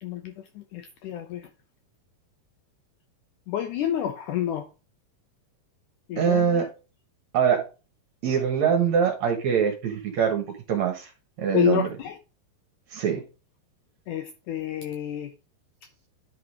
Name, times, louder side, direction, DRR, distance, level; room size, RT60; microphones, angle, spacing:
voice 1, 0.0-1.5 3.5-4.7 6.1-6.7 11.5-12.2 14.1-15.3, left 9 dB, 80° left, 1.8 m, -29 dB
voice 2, 6.2-6.7 7.3-7.6 8.2-11.1 11.4-11.9 12.9-13.2, right 7 dB, 60° right, 2.1 m, -23 dB
10.5 x 3.8 x 4.8 m
omnidirectional pair, 4.3 m